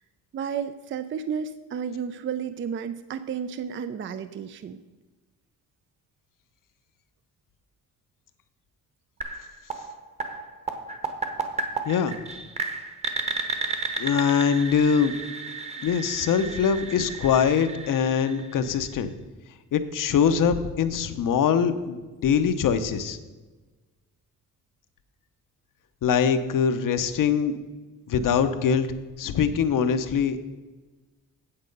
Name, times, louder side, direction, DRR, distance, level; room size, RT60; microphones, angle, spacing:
voice 1, 0.3-4.8, right 7 dB, 35° right, 12 dB, 0.4 m, -32 dB
sound 1, 9.2-19.0, right 4 dB, 20° right, 0.9 m, -33 dB
voice 2, 11.9-12.2 14.0-15.1 15.8-19.1 19.7-23.2 26.0-27.6 28.1-28.9 29.2-30.4, left 7 dB, 70° left, 10 dB, 0.8 m, -23 dB
8.8 x 7.6 x 5.2 m, 1.2 s
wide cardioid pair, 145°, 34 cm